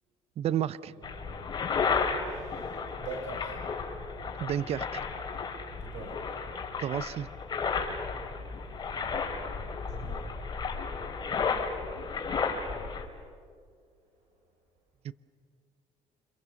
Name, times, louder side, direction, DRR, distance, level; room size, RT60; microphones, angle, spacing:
voice 1, 0.4-0.9 4.3-5.0 6.8-7.3 15.0-15.1, right 10 dB, 60° right, 18 dB, 0.7 m, -31 dB
voice 2, 0.9-1.6 2.2-3.6 5.7-6.2 8.9-10.3, right 3 dB, 85° right, 0 dB, 6.7 m, -45 dB
sound 1, 1.0-13.0, left 5 dB, 35° left, 4.0 m, -33 dB
29.5 x 26.0 x 7.2 m, 2.1 s
cardioid pair, 95°, 12 cm